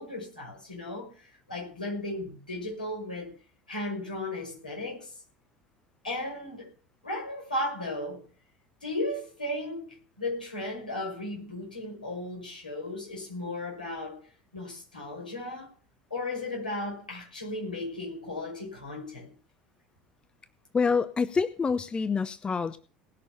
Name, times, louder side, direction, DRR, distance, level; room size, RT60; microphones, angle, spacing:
voice 1, 0.0-3.4 3.7-5.1 6.0-6.7 7.0-8.2 8.8-14.3 14.5-15.7 16.1-19.3, left 1 dB, 85° left, 5.9 m, -35 dB
voice 2, 20.7-22.8, left 5 dB, 20° left, 0.8 m, -27 dB
19.0 x 6.4 x 6.7 m
figure-of-eight pair, 70°, 4 cm